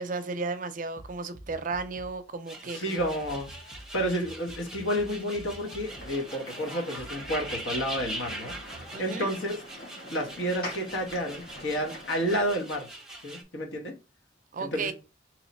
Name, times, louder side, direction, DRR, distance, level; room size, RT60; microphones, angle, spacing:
voice 1, 0.0-3.1 8.9-9.3 14.5-14.9, right 4 dB, 45° right, 0.4 m, -34 dB
sound 1, 1.0-2.3 3.0-8.9, right 1 dB, 35° left, 0.9 m, -48 dB
sound 2, 2.5-13.4, right 1 dB, 5° right, 0.7 m, -42 dB
voice 2, 2.7-3.5 3.9-9.6 10.1-12.9 13.2-13.9 14.6-14.9, equal, 85° left, 1.2 m, -30 dB
sound 3, 5.8-12.5, left 1 dB, 55° left, 1.3 m, -44 dB
3.1 x 2.8 x 4.1 m
head